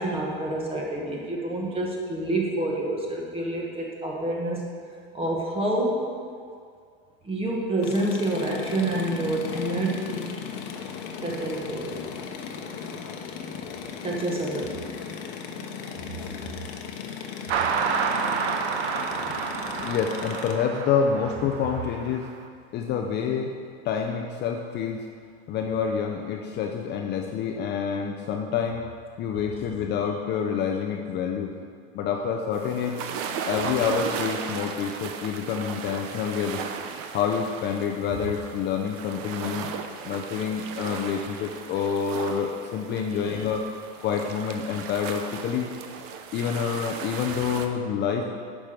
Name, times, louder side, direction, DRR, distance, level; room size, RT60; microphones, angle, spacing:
voice 1, 0.0-4.7 5.1-6.1 7.2-10.3 11.2-12.0 14.0-14.8 43.1-43.4, right 1 dB, 15° right, -2 dB, 1.7 m, -28 dB
sound 1, 7.8-20.5, left 6 dB, 50° left, 1.0 m, -36 dB
sound 2, 17.5-22.3, right 6 dB, 80° right, 0.8 m, -29 dB
voice 2, 19.3-22.3 22.7-23.5 23.8-25.1 25.5-28.8 29.2-31.5 31.9-33.0 33.5-36.7 37.1-39.7 40.0-43.6 44.0-45.7 46.3-48.3, left 7 dB, 35° left, 2 dB, 0.6 m, -27 dB
sound 3, 32.5-47.7, right 6 dB, 45° right, 0.8 m, -36 dB
8.7 x 6.2 x 5.1 m, 2.2 s
supercardioid pair, 130°, 32 cm